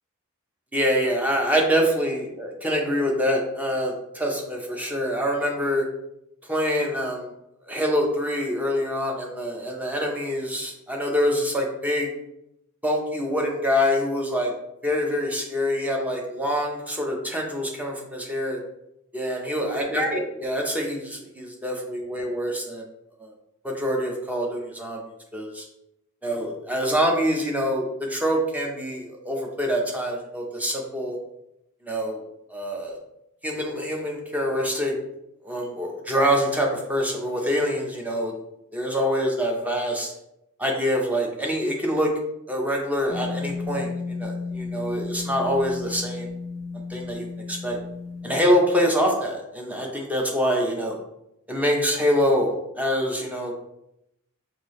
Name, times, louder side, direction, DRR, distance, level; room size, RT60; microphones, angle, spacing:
voice 1, 0.7-5.8 6.5-7.3 7.7-12.1 12.8-14.5 14.8-18.6 19.1-22.9 23.2-23.3 23.6-25.0 25.3-25.7 26.2-31.2 31.8-32.2 32.5-33.0 33.4-34.9 35.4-38.3 38.7-40.1 40.6-42.1 42.5-46.3 46.9-47.8 48.2-51.0 51.5-53.5, equal, 5° right, 0 dB, 0.8 m, -25 dB
sound 1, 43.1-48.5, left 4 dB, 70° right, 1.6 m, -33 dB
6.0 x 2.7 x 3.1 m, 0.82 s
head